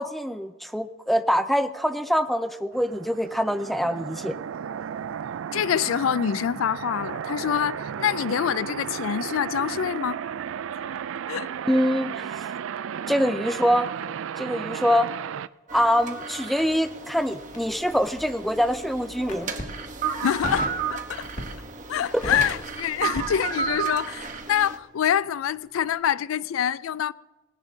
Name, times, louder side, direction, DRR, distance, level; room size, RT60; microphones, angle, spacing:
voice 1, 0.0-4.4 11.7-12.5 13.1-13.9 14.4-15.1 15.7-19.5 22.1-22.2, equal, ahead, 0.4 m, -24 dB
sound 1, 2.7-15.5, right 8 dB, 80° right, 0.3 m, -34 dB
voice 2, 5.5-10.2 11.3-11.5 20.2-21.3 21.9-27.1, left 9 dB, 85° left, 0.3 m, -26 dB
sound 2, 15.7-24.8, right 6 dB, 40° right, 1.0 m, -33 dB
Crackle, 17.5-18.6 19.2-19.8 20.4-20.8 21.2-21.7 22.0-23.9 24.2-24.4, left 1 dB, 40° left, 2.1 m, -35 dB
20.0 x 17.0 x 2.7 m
head